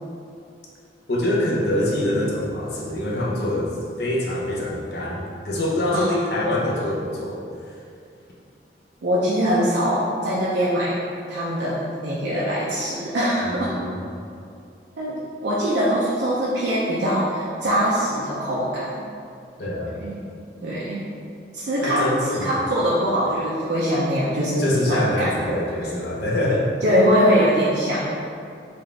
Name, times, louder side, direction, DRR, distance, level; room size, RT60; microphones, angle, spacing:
voice 1, 1.1-7.4 7.7-7.8 13.4-14.0 19.6-20.0 21.8-22.6 24.6-26.7, left 1 dB, 60° left, -4 dB, 0.7 m, -25 dB
voice 2, 9.0-11.0 11.3-13.7 15.0-19.0 20.0-20.2 20.6-21.1 21.5-25.6 26.8-28.3, equal, 70° right, -7 dB, 0.5 m, -22 dB
3.9 x 2.4 x 3.3 m, 2.4 s
head